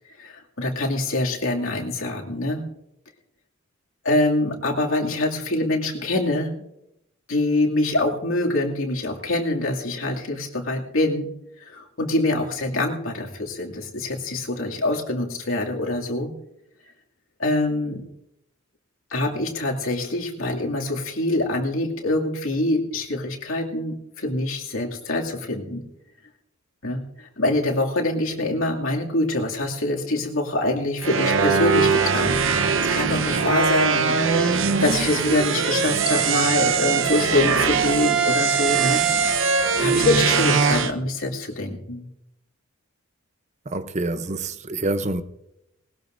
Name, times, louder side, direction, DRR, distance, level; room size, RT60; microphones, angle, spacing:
voice 1, 0.2-2.7 4.0-6.6 7.3-11.3 11.6-16.3 17.4-18.0 19.1-25.8 26.8-39.0 39.5-42.1, left 2 dB, 75° left, 2.5 m, -25 dB
sound 1, 31.0-40.9, right 5 dB, 65° right, 0.9 m, -21 dB
voice 2, 43.7-45.2, right 2 dB, 35° right, 0.7 m, -27 dB
19.5 x 19.0 x 2.6 m
head